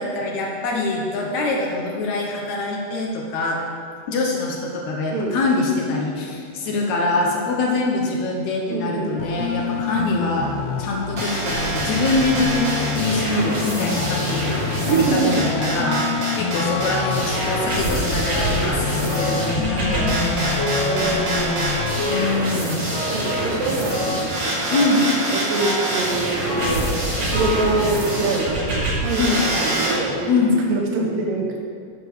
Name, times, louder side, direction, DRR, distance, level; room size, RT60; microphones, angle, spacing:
voice 1, 0.0-3.6 4.1-10.5 10.8-20.7 22.0-22.9 24.7-25.0 29.2-29.4 30.3-30.6, left 2 dB, 70° left, 0 dB, 2.0 m, -24 dB
voice 2, 8.7-9.1 14.9-15.5 17.2-17.3 17.9-18.3 20.8-21.9 22.8-25.0 25.3-30.3 30.7-31.6, right 3 dB, 90° right, -1 dB, 2.9 m, -25 dB
sound 1, 9.2-22.0, left 7 dB, 85° left, 1.5 m, -28 dB
sound 2, 11.2-30.0, right 1 dB, 45° right, 1.8 m, -25 dB
sound 3, 15.8-16.3 16.5-17.8 18.3-18.8 19.1-19.6 19.9-21.5 22.0-22.4 22.9-23.6 23.9-24.4 24.7-25.1 25.6-26.0 26.5-26.9 27.3-28.4 29.0-29.1 29.9-30.0 30.5-30.6, left 1 dB, 50° left, 1.6 m, -30 dB
8.9 x 4.9 x 6.4 m, 2.2 s
omnidirectional pair, 3.8 m